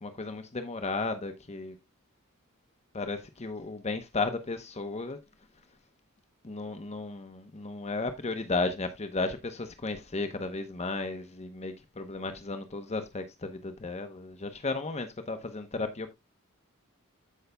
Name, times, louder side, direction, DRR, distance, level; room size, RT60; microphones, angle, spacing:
voice 1, 0.0-1.8 2.9-5.2 6.4-16.1, left 3 dB, 30° left, 0.8 m, -34 dB
15.0 x 5.5 x 2.2 m
head